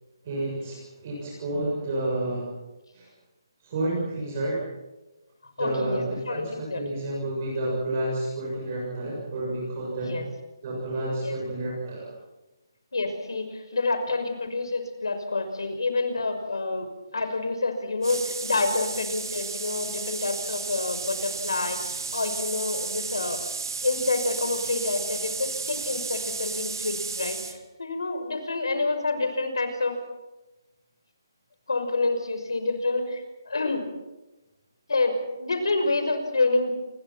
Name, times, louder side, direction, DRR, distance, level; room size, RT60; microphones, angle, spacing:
voice 1, 0.2-2.5 2.9-3.1 3.6-4.7 5.6-10.2 10.6-12.1, right 1 dB, 30° right, -3 dB, 7.1 m, -30 dB
voice 2, 5.6-6.8 10.1-10.3 11.2-11.4 12.9-16.9 17.1-23.4 23.8-30.0 31.7-33.8 34.9-36.7, left 3 dB, 85° left, 7 dB, 6.0 m, -28 dB
sound 1, 18.0-27.6, right 4 dB, 65° right, 2.4 m, -33 dB
28.5 x 21.5 x 5.9 m, 1.0 s
hypercardioid pair, 170°, 2 cm